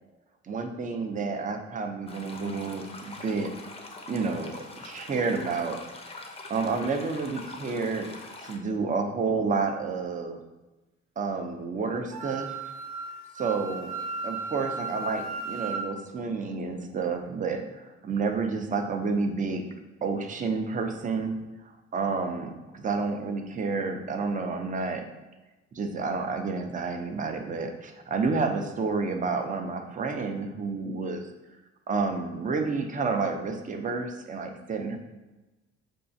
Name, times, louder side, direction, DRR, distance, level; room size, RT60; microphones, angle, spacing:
voice 1, 0.4-3.5 4.1-5.8 6.5-8.1 8.4-10.4 11.2-12.6 13.3-13.9 14.2-19.6 20.0-21.4 21.9-25.0 25.7-31.2 31.9-35.0, right 4 dB, 25° right, 5 dB, 0.5 m, -30 dB
sound 1, 2.1-8.6, left 2 dB, 20° left, 0.6 m, -44 dB
Wind instrument woodwind instrument, 12.1-15.8, right 3 dB, 85° right, 0.8 m, -35 dB
5.4 x 2.3 x 2.6 m, 1.1 s
cardioid pair, 90°, 30 cm